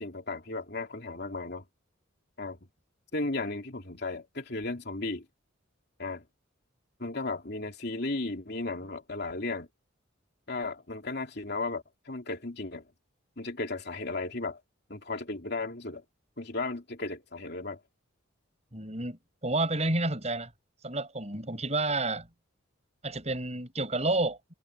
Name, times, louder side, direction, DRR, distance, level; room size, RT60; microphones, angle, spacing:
voice 1, 0.0-1.6 2.4-2.6 3.1-5.2 6.0-6.2 7.0-9.7 10.5-12.8 13.4-14.6 14.9-16.0 16.4-17.8, left 2 dB, 55° left, 3.0 m, -35 dB
voice 2, 18.7-20.5 20.8-22.3 23.0-24.4, right 2 dB, 35° right, 6.1 m, -30 dB
head